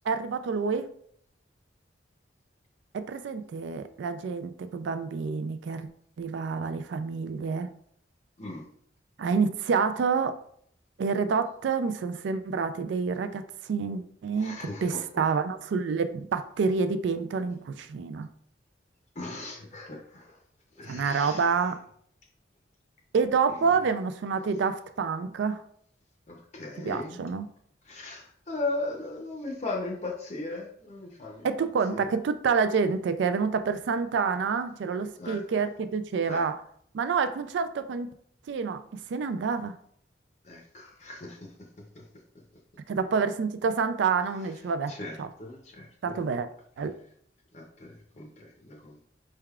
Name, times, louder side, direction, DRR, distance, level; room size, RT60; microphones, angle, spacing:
voice 1, 0.1-0.9 2.9-5.9 6.2-7.7 9.2-10.4 11.0-18.3 20.9-21.8 23.1-25.6 26.7-27.5 31.4-36.6 36.9-38.1 38.5-38.8 39.1-39.7 42.9-45.3 46.0-46.5 46.8-47.0, right 5 dB, 75° right, 10 dB, 0.3 m, -28 dB
voice 2, 14.4-15.0 19.2-20.3 20.8-21.5 26.3-27.2 27.9-31.5 31.9-32.0 35.2-35.4 36.2-36.4 40.4-41.5 41.9-42.1 44.9-46.2 47.5-49.1, left 2 dB, 35° left, 0 dB, 0.6 m, -37 dB
4.6 x 3.4 x 2.3 m, 0.64 s
head